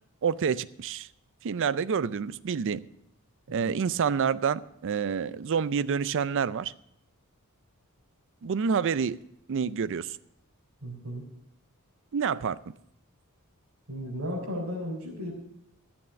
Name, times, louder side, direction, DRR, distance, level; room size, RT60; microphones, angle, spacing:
voice 1, 0.2-1.1 1.4-2.8 3.5-6.7 8.4-9.2 9.5-10.2 12.1-12.6, right 6 dB, 60° right, 17 dB, 0.4 m, -28 dB
voice 2, 10.8-11.2 13.9-15.3, equal, 75° right, -7 dB, 3.8 m, -35 dB
14.0 x 7.1 x 6.4 m, 0.77 s
head